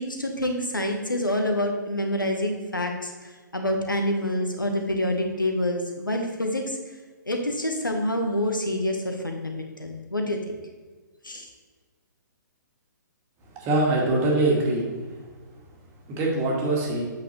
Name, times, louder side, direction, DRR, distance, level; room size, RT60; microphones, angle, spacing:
voice 1, 0.0-6.8 7.3-10.5 11.2-11.5, left 1 dB, 85° left, 3 dB, 1.3 m, -27 dB
voice 2, 13.6-14.8 16.1-17.0, right 2 dB, 25° right, -2 dB, 1.9 m, -23 dB
8.2 x 6.2 x 3.2 m, 1.4 s
figure-of-eight pair, 125°, 11 cm